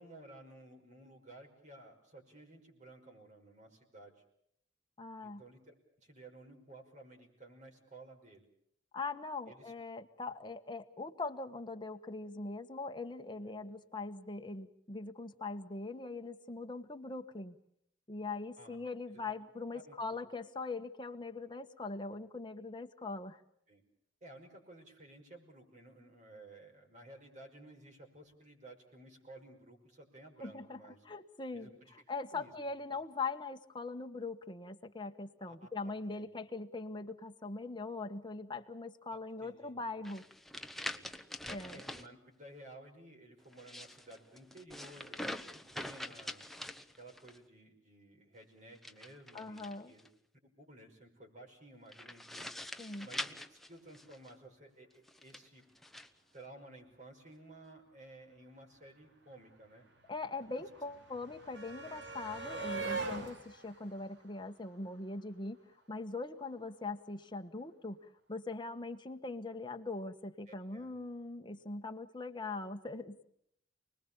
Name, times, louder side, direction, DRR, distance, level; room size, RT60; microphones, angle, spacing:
voice 1, 0.0-4.2 5.2-8.5 9.5-9.7 18.6-18.8 19.1-19.3 19.7-20.2 23.7-23.8 24.2-31.0 31.5-32.0 32.3-32.5 35.5-35.7 36.1-36.3 39.1-40.0 40.9-41.1 41.7-46.4 47.0-50.1 50.4-52.5 53.0-55.6 56.3-59.9 60.5-60.6 61.8-61.9 70.5-71.0, right 1 dB, 40° right, 2 dB, 5.6 m, -55 dB
voice 2, 5.0-5.4 8.9-17.6 18.1-23.4 30.4-30.8 31.0-31.7 32.1-40.2 41.4-41.8 49.3-49.9 52.8-53.1 60.1-65.6 65.9-68.0 68.3-73.2, left 3 dB, 25° left, 6 dB, 1.4 m, -41 dB
sound 1, 40.0-42.1 43.5-47.4 48.8-50.1 51.9-54.3 55.1-56.1, left 1 dB, ahead, 0.9 m, -44 dB
sound 2, 58.7-58.8 59.0-65.2 66.4-66.5 66.8-66.9, right 3 dB, 60° right, 3.5 m, -43 dB
29.0 x 20.5 x 7.0 m, 0.71 s
head